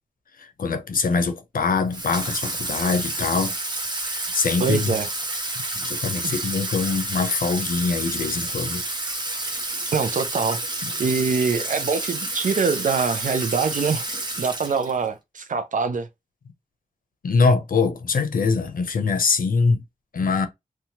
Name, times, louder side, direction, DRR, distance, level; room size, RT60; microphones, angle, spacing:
voice 1, 0.6-3.5 4.0-4.9 5.8-8.8 17.2-19.8 20.1-20.5, left 4 dB, 80° left, 0.6 m, -23 dB
Water tap faucet / Sink (filling or washing), 1.9-15.1, right 2 dB, 30° right, 0.8 m, -29 dB
voice 2, 4.6-5.1 6.2-6.4 9.9-10.6 11.0-14.1 14.4-16.1, right 5 dB, 65° right, 0.4 m, -24 dB
2.8 x 2.2 x 2.7 m
wide cardioid pair, 60°, 14 cm